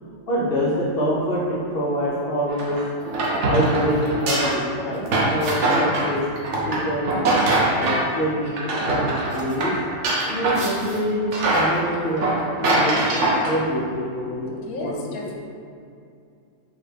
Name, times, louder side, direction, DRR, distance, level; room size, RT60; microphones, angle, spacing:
voice 1, 0.3-2.8 3.4-6.2 6.7-7.2 7.8-9.7 10.3-12.3 12.6-14.9 15.2-15.3, equal, 90° left, -7 dB, 0.5 m, -25 dB
sound 1, 2.5-8.1 8.5-11.0 11.3-13.6, right 2 dB, 60° right, 0.8 m, -22 dB
voice 2, 14.6-15.3, left 3 dB, 70° left, -1 dB, 1.0 m, -32 dB
4.8 x 2.6 x 3.2 m, 2.4 s
omnidirectional pair, 1.8 m